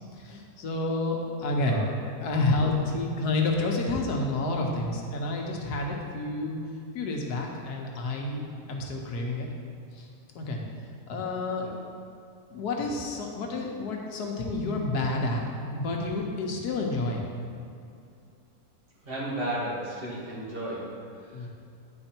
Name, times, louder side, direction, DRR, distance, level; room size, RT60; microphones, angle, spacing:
voice 1, 0.2-1.8 2.2-6.6 6.9-8.4 8.7-9.5 9.9-10.1 10.3-11.7 12.5-15.4 15.7-17.2 21.3-21.5, left 2 dB, 90° left, 1 dB, 1.4 m, -29 dB
voice 2, 1.6-1.9 2.3-2.6 11.6-11.7 19.0-21.5, right 1 dB, 35° right, -6 dB, 1.7 m, -34 dB
8.9 x 4.4 x 4.3 m, 2.5 s
omnidirectional pair, 1.7 m